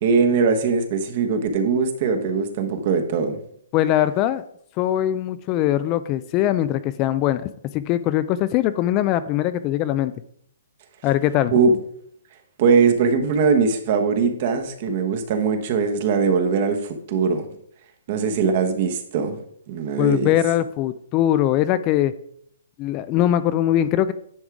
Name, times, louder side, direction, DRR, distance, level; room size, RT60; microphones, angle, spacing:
voice 1, 0.0-3.4 11.5-11.8 12.6-17.5 18.1-19.4 19.7-20.3, right 5 dB, 45° right, 6 dB, 1.1 m, -21 dB
voice 2, 3.7-4.4 4.8-10.1 11.0-11.6 20.0-22.1 22.8-24.1, left 12 dB, 25° left, 14 dB, 0.3 m, -21 dB
10.0 x 3.6 x 4.8 m, 0.67 s
hypercardioid pair, 155°, 0 cm